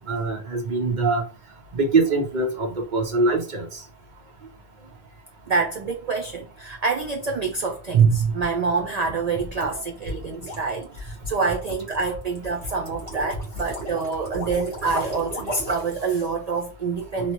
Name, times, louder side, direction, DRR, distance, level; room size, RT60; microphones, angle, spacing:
voice 1, 0.1-1.2 1.7-3.8 17.2-17.3, right 3 dB, 45° right, 0.9 m, -23 dB
voice 2, 5.5-17.3, right 5 dB, 85° right, 0.3 m, -25 dB
sound 1, 10.0-16.0, equal, 70° right, 1.6 m, -35 dB
3.0 x 2.1 x 2.9 m
omnidirectional pair, 1.2 m